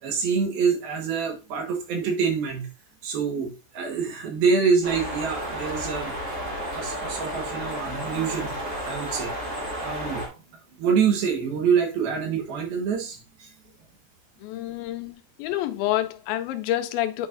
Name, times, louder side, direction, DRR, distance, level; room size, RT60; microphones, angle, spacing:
voice 1, 0.0-2.7 3.0-6.1 6.7-8.5 8.8-9.3 9.8-10.2 10.8-13.5, right 6 dB, 90° right, 3.3 m, -26 dB
sound 1, 4.8-10.3, equal, 25° right, 1.8 m, -32 dB
voice 2, 14.4-17.3, left 13 dB, 80° left, 2.4 m, -28 dB
9.0 x 4.8 x 2.6 m
omnidirectional pair, 4.2 m